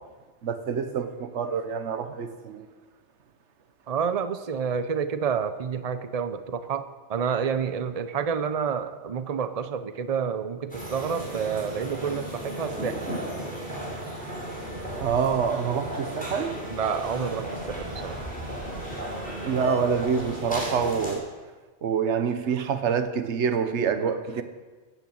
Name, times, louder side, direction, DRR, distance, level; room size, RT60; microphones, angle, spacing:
voice 1, 0.4-2.7 15.0-16.6 19.4-21.2 21.8-24.4, right 6 dB, 70° right, 9 dB, 1.3 m, -26 dB
voice 2, 3.9-13.2 16.7-18.2, right 7 dB, 35° right, 11 dB, 0.8 m, -29 dB
sound 1, 10.7-21.1, right 1 dB, 5° left, 5.2 m, -34 dB
15.0 x 9.1 x 8.6 m, 1.3 s
omnidirectional pair, 1.2 m